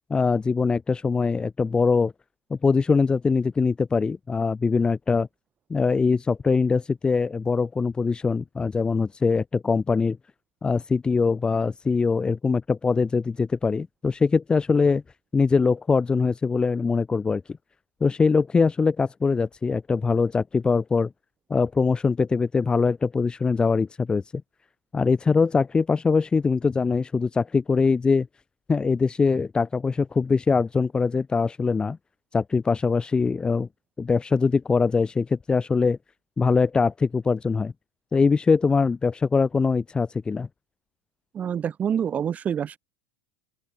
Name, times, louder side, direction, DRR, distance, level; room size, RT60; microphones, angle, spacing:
voice 1, 0.1-2.1 2.5-5.3 5.7-10.2 10.6-15.0 15.3-17.4 18.0-21.1 21.5-24.4 24.9-28.3 28.7-32.0 32.3-33.7 34.0-36.0 36.4-37.7 38.1-40.5, left 4 dB, 15° left, 6.2 m, -22 dB
voice 2, 41.3-42.8, right 8 dB, 25° right, 2.4 m, -26 dB
open air
supercardioid pair, 125°, 6 cm